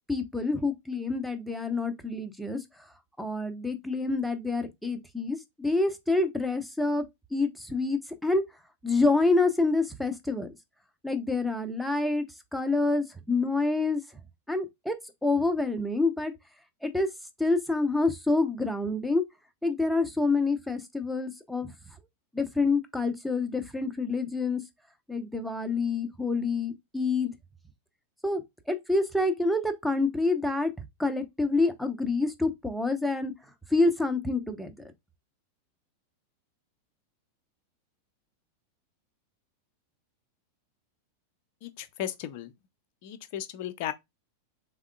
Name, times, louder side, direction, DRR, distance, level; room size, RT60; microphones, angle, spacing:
voice 1, 0.1-2.6 3.2-7.0 7.3-8.4 8.8-10.5 11.0-12.2 12.5-14.0 14.5-15.0 15.2-16.3 16.8-17.1 17.4-19.2 19.6-21.7 22.3-24.6 25.1-27.3 28.2-28.4 28.7-30.7 31.0-33.3 33.7-34.7, left 3 dB, ahead, 0.7 m, -27 dB
voice 2, 41.6-42.5 43.0-43.9, left 11 dB, 45° left, 0.6 m, -35 dB
3.5 x 3.5 x 2.2 m
figure-of-eight pair, 90°, 0 cm